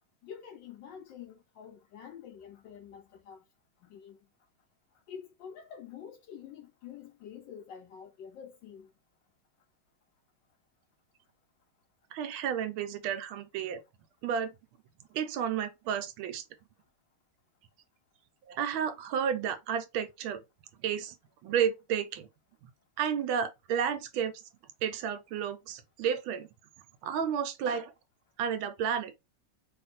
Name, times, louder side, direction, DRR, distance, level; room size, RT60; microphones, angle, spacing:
voice 1, 0.2-3.4 3.8-4.2 5.1-8.9, left 8 dB, 75° left, 1.1 m, -47 dB
voice 2, 12.1-13.8 14.2-14.5 15.1-16.4 18.5-20.4 20.8-21.2 21.4-22.3 23.0-24.4 24.8-26.5 27.0-27.9 28.4-29.1, right 8 dB, 75° right, 1.4 m, -31 dB
3.4 x 2.5 x 4.1 m
omnidirectional pair, 2.3 m